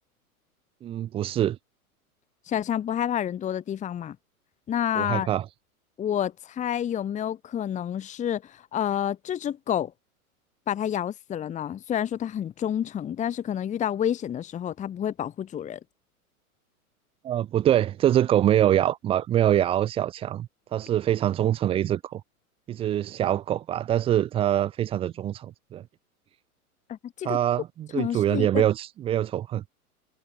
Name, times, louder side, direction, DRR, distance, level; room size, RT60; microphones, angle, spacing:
voice 1, 0.8-1.6 5.0-5.4 17.2-22.2 22.7-25.8 27.2-29.7, right 11 dB, 15° right, 0.7 m, -24 dB
voice 2, 2.4-4.2 4.7-5.3 6.0-9.9 10.7-15.8 26.9-27.4 27.9-28.7, left 10 dB, 15° left, 1.5 m, -29 dB
figure-of-eight pair, 105°, 45 cm